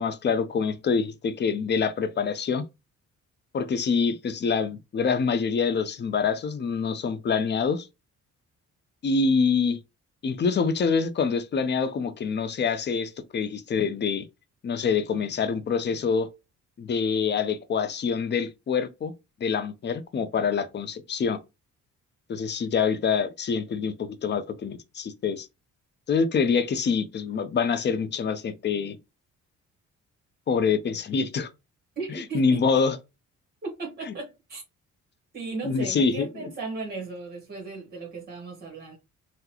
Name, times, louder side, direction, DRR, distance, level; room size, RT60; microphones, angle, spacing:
voice 1, 0.0-2.6 3.5-7.9 9.0-9.8 10.2-14.3 14.6-16.3 16.8-19.1 19.4-21.4 22.3-25.5 26.1-29.0 30.5-31.5 32.1-33.0 34.1-34.2 35.6-36.5, left 5 dB, 35° left, 0.6 m, -26 dB
voice 2, 32.0-32.6 33.6-34.6 35.3-39.0, right 3 dB, 30° right, 1.4 m, -36 dB
3.7 x 2.2 x 2.9 m
cardioid pair, 90°, 30 cm